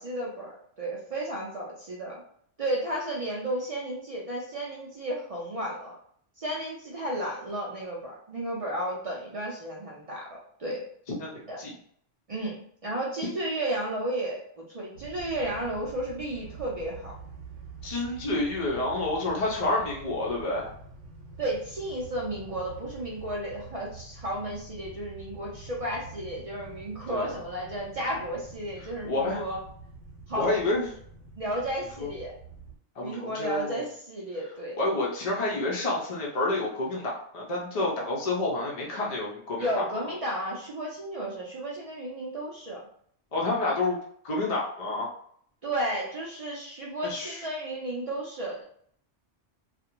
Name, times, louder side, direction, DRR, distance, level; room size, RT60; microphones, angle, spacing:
voice 1, 0.0-2.2 2.6-6.0 6.4-10.8 11.5-11.6 12.3-12.6 12.8-17.1 21.4-29.6 30.3-30.5 31.4-32.3 33.0-34.8 39.6-42.8 45.6-48.6, right 1 dB, 60° right, -4 dB, 0.3 m, -33 dB
voice 2, 11.2-11.7 17.8-20.7 27.1-27.3 28.8-29.4 30.4-30.9 32.0-32.1 33.0-33.8 34.8-39.9 43.3-44.0 44.2-45.1 47.0-47.4, left 2 dB, 55° left, -3 dB, 0.4 m, -29 dB
sound 1, 14.9-32.8, right 3 dB, 80° right, 0.9 m, -46 dB
2.4 x 2.0 x 2.9 m, 0.63 s
omnidirectional pair, 1.2 m